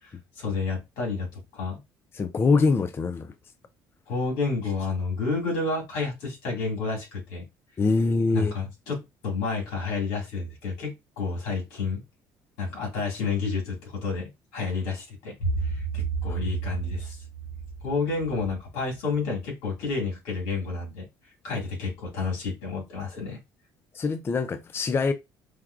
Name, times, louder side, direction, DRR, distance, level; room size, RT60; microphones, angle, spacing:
voice 1, 0.0-1.8 4.1-7.5 8.3-12.0 12.6-17.2 17.8-21.0 21.4-23.4, left 3 dB, 90° left, 2.1 m, -30 dB
voice 2, 2.2-3.3 7.8-8.5 16.3-16.4 23.9-25.1, left 4 dB, 30° left, 0.4 m, -24 dB
4.7 x 2.2 x 2.4 m
cardioid pair, 95°, 8 cm